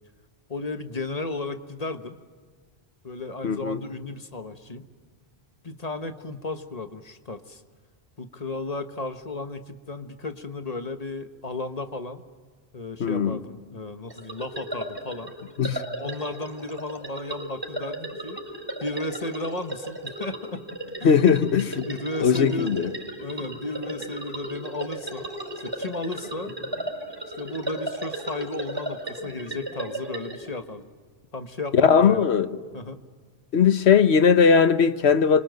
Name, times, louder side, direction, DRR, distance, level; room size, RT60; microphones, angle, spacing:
voice 1, 0.5-2.1 3.0-4.9 5.6-7.6 8.2-12.2 12.7-15.3 16.0-18.4 18.8-20.6 21.0-21.2 21.8-22.7 23.2-25.3 25.6-26.5 27.4-30.9 31.3-32.2 32.7-33.0, left 2 dB, 35° left, 1.4 m, -34 dB
voice 2, 3.4-3.8 13.0-13.4 15.6-15.8 21.0-21.9 22.2-22.9 31.7-32.5 33.5-35.4, left 6 dB, 80° left, 1.3 m, -19 dB
sound 1, 14.1-30.5, right 1 dB, 20° right, 5.7 m, -35 dB
28.5 x 24.5 x 8.0 m
omnidirectional pair, 1.1 m